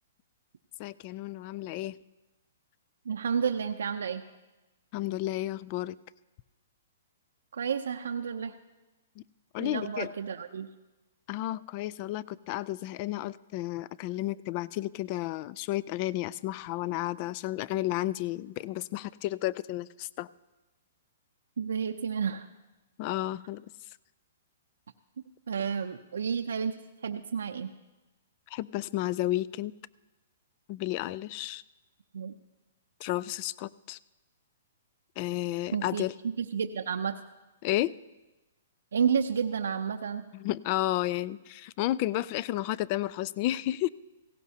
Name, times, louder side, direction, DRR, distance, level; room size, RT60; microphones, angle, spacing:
voice 1, 0.8-2.0 4.9-6.0 9.2-9.3 9.5-10.1 11.3-20.3 23.0-23.6 28.5-29.7 30.7-31.6 33.0-34.0 35.2-36.1 37.6-38.0 40.3-43.9, left 15 dB, 40° left, 20 dB, 0.3 m, -32 dB
voice 2, 3.1-4.2 7.5-8.5 9.6-10.7 21.6-22.5 25.5-26.8 27.0-27.7 32.1-32.3 35.7-37.2 38.9-40.2, right 7 dB, 85° right, 6 dB, 0.6 m, -31 dB
17.0 x 16.5 x 2.8 m, 1.1 s
hypercardioid pair, 145°, 0 cm